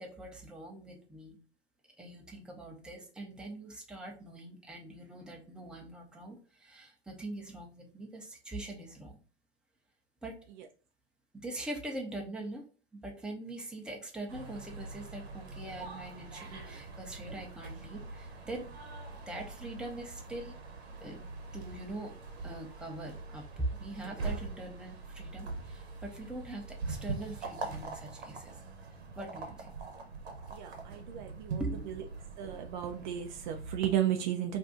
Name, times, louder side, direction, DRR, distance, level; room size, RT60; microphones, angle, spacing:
voice 1, 0.0-1.4 2.0-9.2 10.2-10.4 11.3-12.7 12.9-18.7 19.3-20.6 21.0-21.2 21.5-22.1 22.4-28.6 29.2-29.7 31.6-32.1, right 1 dB, 5° right, 0 dB, 0.6 m, -42 dB
sound 1, 14.3-33.8, right 3 dB, 75° right, 0.9 m, -43 dB
voice 2, 30.5-32.0 32.4-34.6, right 11 dB, 45° right, 5 dB, 0.4 m, -34 dB
2.7 x 2.3 x 3.6 m, 0.38 s
hypercardioid pair, 100°, 32 cm